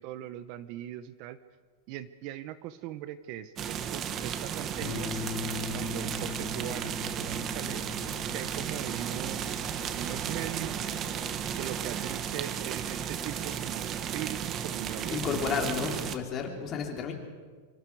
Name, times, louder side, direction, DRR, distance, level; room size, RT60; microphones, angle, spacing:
voice 1, 0.0-1.4 1.9-5.1 5.7-7.8 8.3-10.9 11.6-15.7, right 12 dB, 40° right, 14 dB, 0.8 m, -40 dB
sound 1, 3.6-16.2, right 8 dB, 25° right, 1.2 m, -34 dB
Bass guitar, 4.8-11.1, left 5 dB, 65° left, 3.9 m, -41 dB
voice 2, 15.1-17.1, left 6 dB, 25° left, 2 dB, 3.4 m, -32 dB
25.5 x 25.5 x 4.8 m, 1.5 s
supercardioid pair, 160°, 0 cm